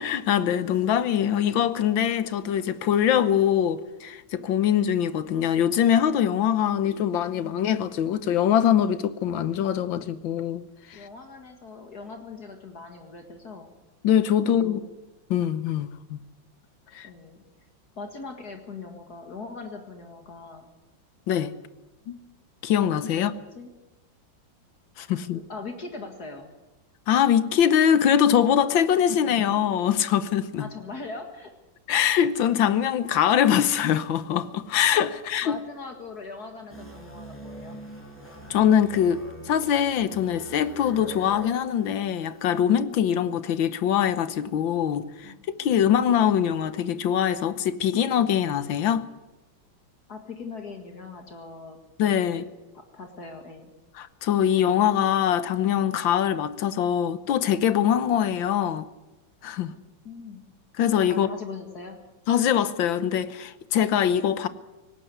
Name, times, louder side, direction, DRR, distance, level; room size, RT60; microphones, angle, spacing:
voice 1, 0.0-10.6 10.9-11.0 14.0-14.8 15.3-16.2 16.9-17.1 21.3-21.5 22.1-22.2 22.6-23.3 25.0-25.4 27.1-30.7 31.9-35.6 38.5-45.3 45.6-49.0 52.0-52.4 54.0-58.8 59.4-59.7 60.8-61.3 62.3-64.5, left 9 dB, 75° left, 1.7 m, -23 dB
voice 2, 10.9-13.7 14.5-14.8 17.0-17.4 18.0-20.7 23.1-23.7 25.3-26.5 30.6-31.5 35.4-37.8 45.2-46.0 50.1-51.8 52.3-52.5 52.7-53.7 59.7-60.4 61.1-62.0, left 4 dB, 55° left, 2.4 m, -41 dB
sound 1, 36.7-42.6, right 1 dB, 5° left, 5.4 m, -43 dB
18.5 x 17.0 x 9.4 m
omnidirectional pair, 2.1 m